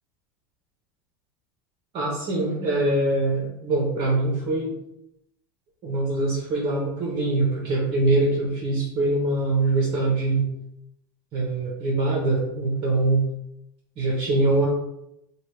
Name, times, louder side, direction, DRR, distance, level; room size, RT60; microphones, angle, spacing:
voice 1, 1.9-4.7 5.8-10.5 11.3-13.2 14.0-14.7, right 2 dB, 45° right, -4 dB, 1.0 m, -23 dB
2.9 x 2.4 x 3.4 m, 0.81 s
hypercardioid pair, 100°, 12 cm